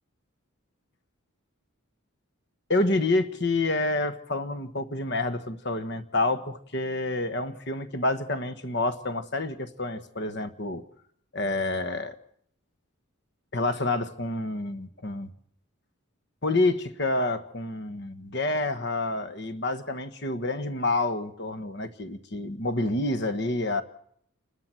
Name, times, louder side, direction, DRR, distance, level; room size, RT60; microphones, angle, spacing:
voice 1, 2.7-10.8 11.3-12.2 13.5-15.3 16.4-23.8, left 2 dB, 50° left, 11 dB, 1.4 m, -28 dB
29.0 x 12.5 x 7.6 m, 0.66 s
head